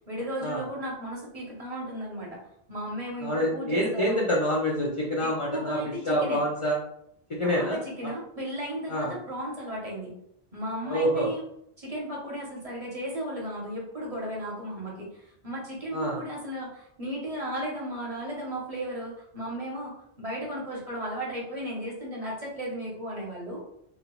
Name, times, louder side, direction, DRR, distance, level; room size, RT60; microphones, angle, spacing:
voice 1, 0.0-2.4 2.7-4.3 5.2-6.4 7.4-10.1 10.5-11.4 11.8-23.6, right 1 dB, 40° right, -3 dB, 0.9 m, -35 dB
voice 2, 3.2-6.8 7.3-7.8 8.9-9.1 10.9-11.3 15.9-16.2, equal, 40° left, -4 dB, 0.5 m, -27 dB
3.4 x 2.2 x 3.0 m, 0.73 s
omnidirectional pair, 1.1 m